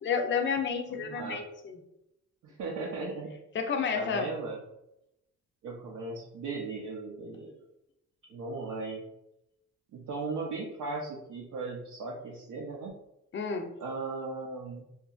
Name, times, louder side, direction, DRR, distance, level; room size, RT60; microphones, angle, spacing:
voice 1, 0.0-1.8 3.5-4.3 13.3-13.7, left 6 dB, 40° left, 4 dB, 0.5 m, -30 dB
voice 2, 0.9-1.4 2.4-3.3 3.9-4.6 5.6-7.6 8.3-9.0 9.9-12.9 13.8-14.9, right 3 dB, 75° right, -3 dB, 0.5 m, -37 dB
2.8 x 2.5 x 2.3 m, 0.86 s
cardioid pair, 90°, 30 cm